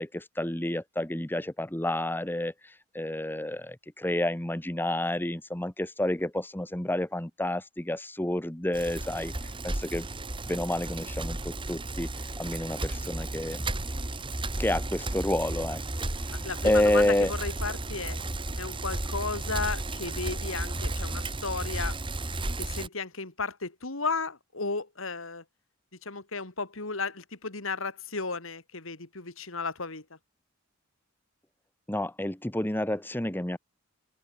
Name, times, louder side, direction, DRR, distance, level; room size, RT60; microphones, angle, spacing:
voice 1, 0.0-10.1 10.5-13.6 14.6-15.8 16.2-17.3 31.9-33.6, left 1 dB, 10° left, 1.3 m, -29 dB
Bicycle, 8.7-22.9, right 2 dB, 25° right, 1.6 m, -33 dB
voice 2, 16.3-18.2 18.6-22.0 22.6-25.4 26.0-30.2, left 4 dB, 70° left, 2.7 m, -34 dB
head